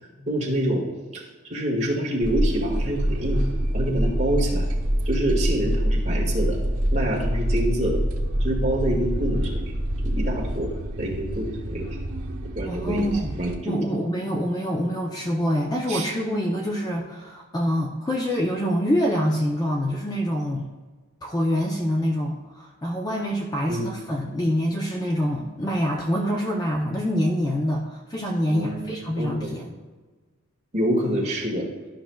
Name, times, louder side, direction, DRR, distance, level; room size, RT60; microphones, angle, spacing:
voice 1, 0.3-0.8 1.1-3.4 3.7-4.7 5.0-6.6 6.9-8.0 8.4-9.7 10.0-12.0 12.5-13.1 13.4-13.7 15.9-16.1 23.7-23.9 28.5-29.6 30.7-31.7, right 1 dB, 30° right, -3 dB, 1.6 m, -27 dB
sound 1, 2.2-13.6, equal, 90° right, 0.9 m, -26 dB
voice 2, 12.6-13.4 13.7-20.7 21.2-29.8, equal, 15° left, -1 dB, 0.5 m, -25 dB
12.5 x 5.9 x 2.3 m, 1.3 s
head